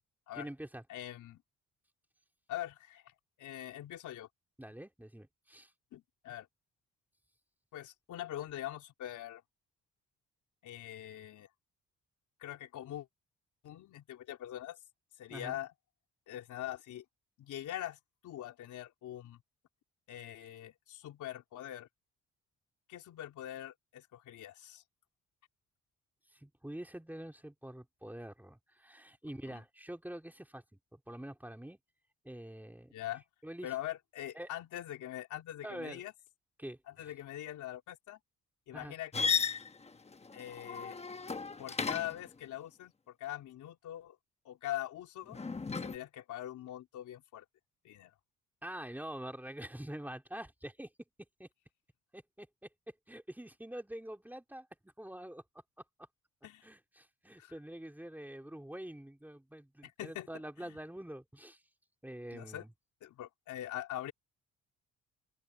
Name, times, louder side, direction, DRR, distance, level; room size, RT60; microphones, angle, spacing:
voice 1, 0.3-0.8 4.6-5.7 15.3-15.6 26.3-30.6 30.9-31.8 32.2-32.9 33.4-33.7 34.3-34.5 35.6-36.0 36.6-37.1 38.7-39.0 48.6-50.9 51.4-51.5 52.1-52.5 52.9-55.4 56.6-61.6 62.0-62.7, right 1 dB, 5° right, 3.3 m, -46 dB
voice 2, 0.9-1.4 2.5-3.1 3.4-4.3 5.9-6.5 7.7-9.4 10.6-11.5 12.4-13.1 13.6-14.8 15.2-15.7 16.3-17.0 17.4-18.0 18.2-19.4 20.1-21.9 22.9-24.8 29.5-29.6 32.9-33.2 33.6-36.1 36.9-38.2 38.7-39.4 40.3-41.0 41.6-44.2 44.4-45.5 45.8-47.4 47.8-48.1 56.4-56.6 57.4-57.5 59.8-60.3 60.6-60.8 62.3-62.6 63.0-64.1, left 12 dB, 80° left, 4.0 m, -43 dB
sound 1, 39.1-42.3 45.3-46.0, left 5 dB, 20° left, 1.2 m, -35 dB
open air
cardioid pair, 90°, 30 cm